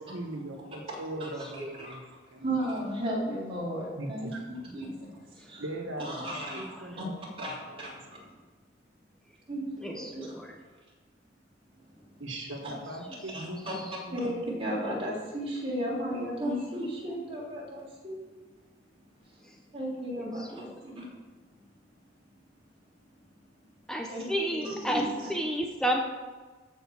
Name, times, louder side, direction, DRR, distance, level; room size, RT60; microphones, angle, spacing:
voice 1, 0.1-2.0 2.3-2.5 3.9-4.4 5.6-6.2 6.6-7.5 12.2-14.2, right 1 dB, 80° right, 1 dB, 1.7 m, -40 dB
voice 2, 0.9-5.6 6.0-7.1 7.4-8.4 9.5-10.6 11.8-12.2 12.6-12.7 13.3-18.2 19.2-19.4 19.7-21.1 24.1-25.3, right 1 dB, 30° right, -5 dB, 3.3 m, -35 dB
voice 3, 9.8-10.5 13.1-13.2 13.7-13.8 16.1-16.2 19.4-19.5 20.2-20.7 23.9-25.0 25.3-26.1, equal, 5° left, 2 dB, 0.7 m, -32 dB
13.5 x 5.5 x 6.3 m, 1.4 s
head